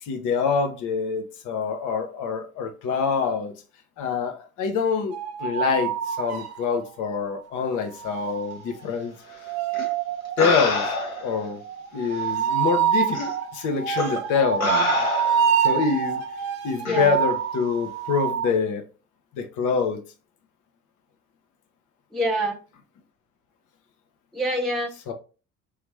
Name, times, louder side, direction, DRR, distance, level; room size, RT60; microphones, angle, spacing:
voice 1, 0.0-3.5 4.0-9.1 10.4-10.8 11.2-11.6 11.9-13.2 13.5-14.7 15.6-16.2 16.6-18.8 19.3-20.0 25.1-25.2, left 5 dB, 45° left, 1.0 m, -25 dB
sound 1, 5.1-6.9 8.0-18.5, right 8 dB, 40° right, 0.8 m, -27 dB
sound 2, 9.7-9.9 10.4-11.3 12.2-12.3 13.1-13.3 14.0-14.2 14.6-15.6 16.9-17.1, left 3 dB, 80° left, 0.9 m, -26 dB
voice 2, 22.1-22.6 24.3-24.9, right 1 dB, ahead, 0.6 m, -25 dB
4.8 x 3.0 x 3.4 m
figure-of-eight pair, 60°, 42 cm